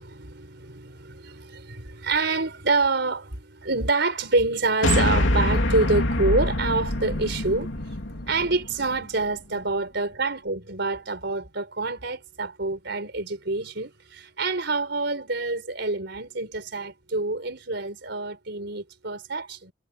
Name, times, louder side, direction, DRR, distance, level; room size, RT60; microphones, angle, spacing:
voice 1, 0.0-8.0 8.3-19.7, right 3 dB, 60° right, 4.8 m, -27 dB
sound 1, 4.8-9.3, left 1 dB, 80° left, 3.1 m, -25 dB
head